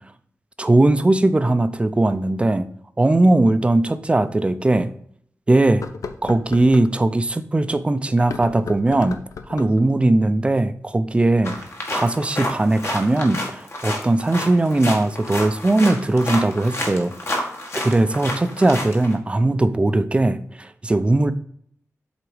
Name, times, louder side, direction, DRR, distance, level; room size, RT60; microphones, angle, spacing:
voice 1, 0.6-2.7 3.0-4.9 5.5-5.8 6.2-9.2 9.5-11.6 11.9-17.1 17.7-21.3, right 2 dB, 20° right, 11 dB, 0.5 m, -19 dB
sound 1, 3.7-3.8 4.4-4.5 5.7-6.9 8.2-9.8, left 5 dB, 90° left, 0.6 m, -35 dB
sound 2, 11.4-19.1, left 1 dB, 55° left, 1.8 m, -30 dB
7.8 x 4.1 x 4.8 m, 0.64 s
wide cardioid pair, 140°, 5 cm